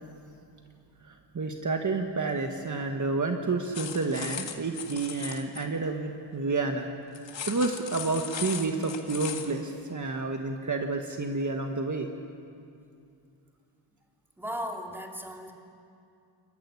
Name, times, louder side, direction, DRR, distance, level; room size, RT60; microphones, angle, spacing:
voice 1, 1.0-12.1, right 3 dB, 40° right, 4 dB, 1.5 m, -30 dB
sound 1, 3.7-5.6 7.1-9.5, left 7 dB, 75° left, 1.9 m, -38 dB
voice 2, 14.4-15.5, equal, 5° right, 1 dB, 2.6 m, -36 dB
28.0 x 14.0 x 9.8 m, 2.5 s
wide cardioid pair, 100°, 44 cm